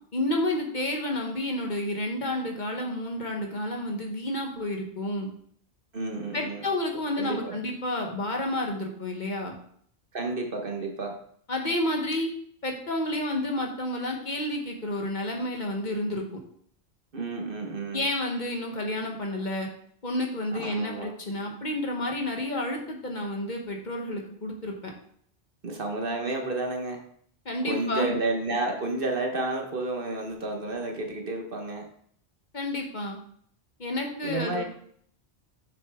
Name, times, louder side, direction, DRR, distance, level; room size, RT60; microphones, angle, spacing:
voice 1, 0.1-5.3 6.3-9.6 11.5-12.3 12.6-16.2 17.9-19.7 20.0-24.9 27.4-28.2 32.5-33.2 33.8-34.6, left 1 dB, 45° left, 1 dB, 1.1 m, -30 dB
voice 2, 5.9-6.7 7.2-7.6 10.1-11.1 17.1-18.1 20.5-21.1 25.6-27.0 27.7-31.9 34.2-34.6, right 2 dB, 55° right, 2 dB, 1.3 m, -31 dB
6.6 x 6.5 x 3.5 m, 0.62 s
omnidirectional pair, 1.1 m